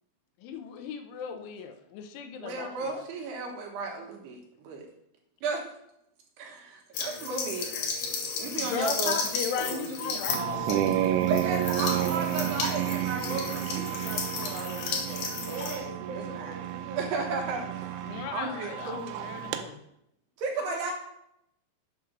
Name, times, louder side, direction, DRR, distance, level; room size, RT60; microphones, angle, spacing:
voice 1, 0.4-3.0 8.6-10.9 18.1-19.8, left 6 dB, 85° left, 6 dB, 3.2 m, -36 dB
voice 2, 2.4-4.9 5.4-5.6 6.4-7.7 8.4-9.1 9.7-10.2 11.3-15.6 16.0-16.6 17.0-17.9 18.3-19.4 20.4-20.9, right 4 dB, 70° right, 0 dB, 3.0 m, -34 dB
sound 1, 6.9-15.8, left 5 dB, 65° left, 2.7 m, -34 dB
sound 2, 10.3-19.6, right 12 dB, 90° right, 3.1 m, -31 dB
voice 3, 15.3-18.1 20.6-20.9, right 3 dB, 50° right, -3 dB, 2.8 m, -42 dB
7.9 x 5.9 x 6.0 m, 0.79 s
omnidirectional pair, 5.4 m